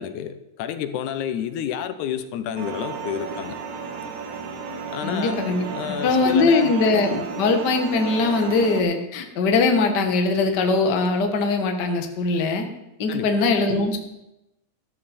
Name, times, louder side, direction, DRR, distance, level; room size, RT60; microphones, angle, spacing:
voice 1, 0.0-3.6 4.9-6.7 13.1-13.3, left 9 dB, 90° left, 10 dB, 2.3 m, -30 dB
sound 1, 2.6-8.8, right 5 dB, 85° right, 2.9 m, -33 dB
voice 2, 5.0-5.7 6.0-12.7 13.0-14.0, left 3 dB, 45° left, 5 dB, 1.5 m, -21 dB
13.5 x 13.5 x 4.4 m, 0.91 s
omnidirectional pair, 3.4 m